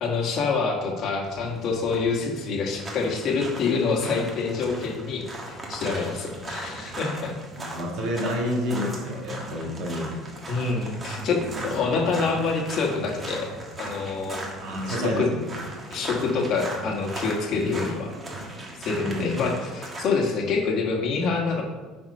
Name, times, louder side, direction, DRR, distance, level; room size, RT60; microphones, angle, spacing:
voice 1, 0.0-7.3 10.5-13.5 13.8-14.4 14.9-15.3 15.9-18.1 18.8-21.6, left 4 dB, 50° left, 1 dB, 1.5 m, -26 dB
sound 1, 1.3-20.0, right 1 dB, 20° right, 1.5 m, -38 dB
voice 2, 7.7-10.1 14.6-15.4 19.0-19.3, equal, 60° right, -2 dB, 1.7 m, -28 dB
8.5 x 4.3 x 5.4 m, 1.3 s
cardioid pair, 150°, 0 cm